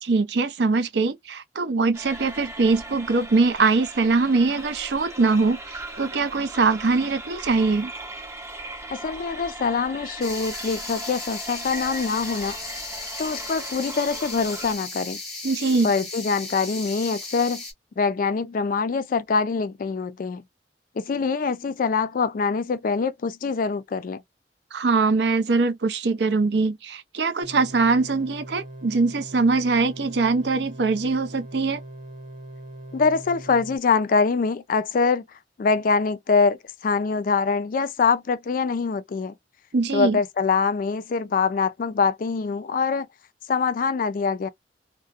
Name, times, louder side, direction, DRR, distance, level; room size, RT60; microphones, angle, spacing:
voice 1, 0.0-7.9 15.4-15.9 24.7-31.8 39.7-40.2, right 3 dB, 70° right, 0.5 m, -22 dB
sound 1, 1.9-14.7, right 2 dB, 15° right, 0.6 m, -38 dB
voice 2, 8.9-12.6 13.2-15.2 15.8-17.6 18.0-20.4 21.0-24.2 32.9-35.2 35.6-39.4 39.9-43.1 43.5-44.5, left 5 dB, 50° left, 0.3 m, -24 dB
sound 2, 10.2-17.7, left 3 dB, ahead, 0.9 m, -36 dB
sound 3, 27.4-33.8, right 1 dB, 50° right, 0.8 m, -41 dB
2.3 x 2.1 x 2.5 m
head